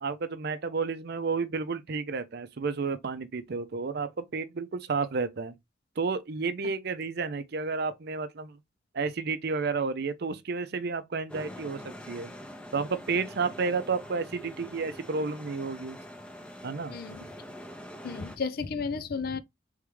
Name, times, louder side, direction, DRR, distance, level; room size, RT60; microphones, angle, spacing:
voice 1, 0.0-5.5 6.0-8.6 8.9-11.8 12.1-12.3 12.7-16.0 16.6-17.0, right 4 dB, 55° right, 0.5 m, -31 dB
sound 1, 11.3-18.4, equal, 5° left, 0.7 m, -44 dB
voice 2, 16.9-17.2 18.0-19.4, left 5 dB, 50° left, 0.5 m, -33 dB
3.5 x 3.5 x 3.2 m
head